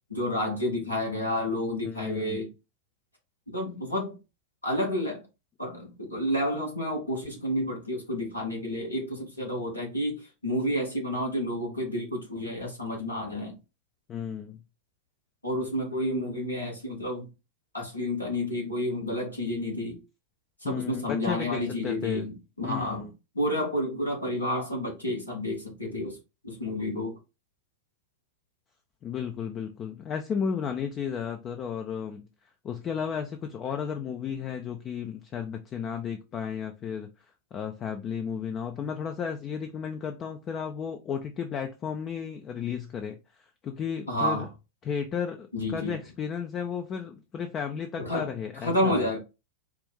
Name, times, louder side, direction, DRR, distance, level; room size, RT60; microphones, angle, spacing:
voice 1, 0.1-2.5 3.5-4.1 4.6-5.2 5.6-13.6 15.4-17.3 17.7-20.0 20.6-26.2 26.4-27.2 44.1-44.5 45.5-45.9 48.0-48.3 48.6-49.2, left 1 dB, 80° left, 1.7 m, -30 dB
voice 2, 1.8-2.4 14.1-14.6 20.6-22.3 22.6-23.1 29.0-32.3 32.6-37.1 37.5-43.2 43.6-44.5 44.8-49.1, left 7 dB, 30° left, 0.5 m, -33 dB
4.5 x 2.5 x 3.5 m
figure-of-eight pair, 90°, 0 cm